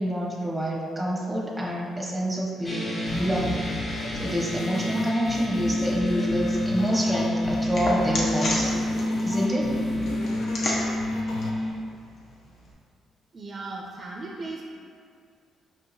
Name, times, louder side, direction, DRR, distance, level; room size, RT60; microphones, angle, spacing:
voice 1, 0.0-8.8 9.2-9.7, equal, ahead, -4 dB, 0.8 m, -28 dB
sound 1, 2.6-11.7, left 1 dB, 30° left, 1.0 m, -28 dB
sound 2, 3.1-11.5, left 3 dB, 90° left, 0.4 m, -35 dB
sound 3, 5.9-12.7, left 1 dB, 60° left, 0.8 m, -35 dB
voice 2, 13.3-14.6, right 3 dB, 40° right, -1 dB, 0.4 m, -36 dB
5.2 x 2.8 x 2.6 m, 2.2 s
cardioid pair, 90°, 0 cm